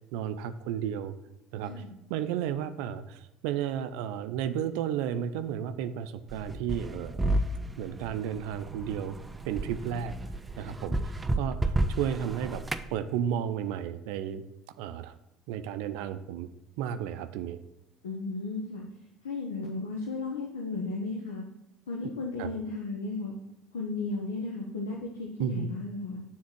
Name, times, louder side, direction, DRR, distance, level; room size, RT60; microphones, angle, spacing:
voice 1, 0.1-1.1 1.5-1.8 2.1-7.2 7.8-9.2 9.4-10.1 10.6-12.6 12.9-14.4 14.8-15.1 15.5-16.5 16.8-17.6 22.4-22.5 25.4-25.7, right 9 dB, 70° right, 11 dB, 0.4 m, -33 dB
sound 1, 6.3-12.9, right 1 dB, 20° right, 0.5 m, -32 dB
voice 2, 18.0-18.8 19.2-21.4 21.9-23.3 23.7-26.2, left 3 dB, 85° left, 0 dB, 0.8 m, -34 dB
7.2 x 3.7 x 6.1 m, 0.94 s
hypercardioid pair, 65°, 0 cm